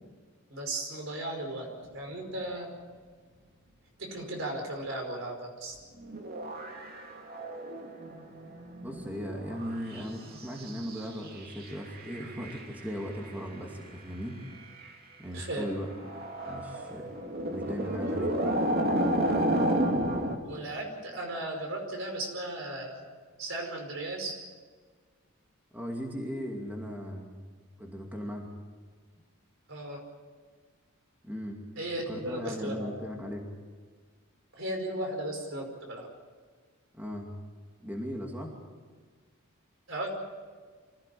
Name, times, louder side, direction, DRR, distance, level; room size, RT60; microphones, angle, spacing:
voice 1, 0.5-1.7 1.9-2.8 4.0-5.8 15.3-15.7 20.4-23.0 23.4-24.4 29.7-30.0 31.8-33.0 34.5-36.1 39.9-40.1, right 1 dB, 60° right, 2 dB, 5.2 m, -36 dB
sound 1, 6.0-10.1 10.4-13.3 14.8-14.9 15.9-20.4, right 1 dB, 45° right, 2.7 m, -31 dB
voice 2, 8.8-14.4 15.2-17.1 17.5-18.4 25.7-27.4 27.8-28.5 31.2-31.6 32.1-33.5 36.9-37.3 37.8-38.5, equal, 10° right, 0 dB, 2.5 m, -38 dB
25.5 x 16.0 x 8.6 m, 1.5 s
head